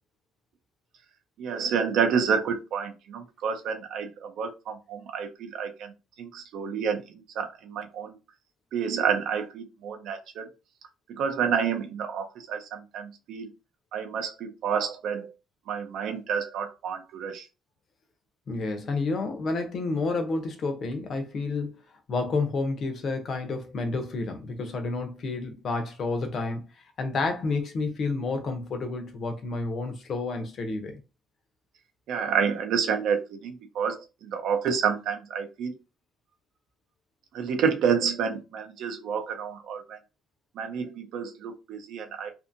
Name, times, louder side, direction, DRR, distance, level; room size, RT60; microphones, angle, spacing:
voice 1, 1.4-5.9 6.2-8.2 8.7-10.5 11.1-13.5 13.9-15.3 15.7-17.5 32.1-35.7 37.3-40.0 40.6-42.3, right 7 dB, 65° right, 0.5 m, -29 dB
voice 2, 18.5-21.8 22.1-26.6 27.0-31.0, left 3 dB, 40° left, 0.6 m, -30 dB
2.6 x 2.6 x 2.5 m
cardioid pair, 165°, 0 cm